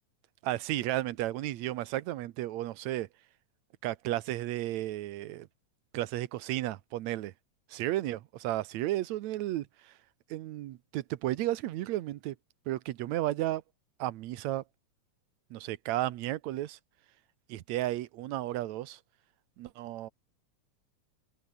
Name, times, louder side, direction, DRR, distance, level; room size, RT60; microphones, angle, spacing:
voice 1, 0.4-3.1 3.8-5.5 5.9-7.3 7.7-9.9 10.3-12.4 12.7-13.6 14.0-14.6 15.5-16.8 17.5-19.0 19.6-20.1, right 15 dB, 75° right, 2.2 m, -33 dB
open air
omnidirectional pair, 3.3 m